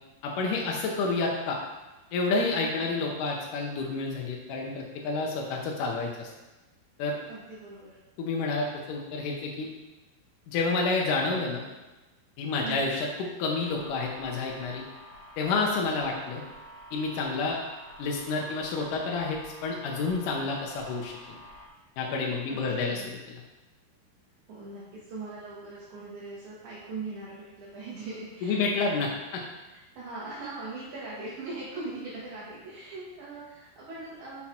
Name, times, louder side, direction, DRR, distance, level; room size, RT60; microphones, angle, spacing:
voice 1, 0.2-1.6 2.1-6.3 7.0-7.2 8.2-9.7 10.5-11.6 12.4-14.8 15.4-16.4 16.9-17.6 18.0-21.4 22.0-23.0 28.4-29.4, left 3 dB, 75° left, -1 dB, 2.1 m, -29 dB
voice 2, 7.3-8.0 12.6-12.9 22.5-23.1 24.5-28.6 29.7-34.4, right 3 dB, 60° right, -7 dB, 2.4 m, -40 dB
sound 1, 13.6-21.7, equal, 30° left, 1.7 m, -49 dB
6.3 x 5.7 x 4.3 m, 1.1 s
omnidirectional pair, 4.4 m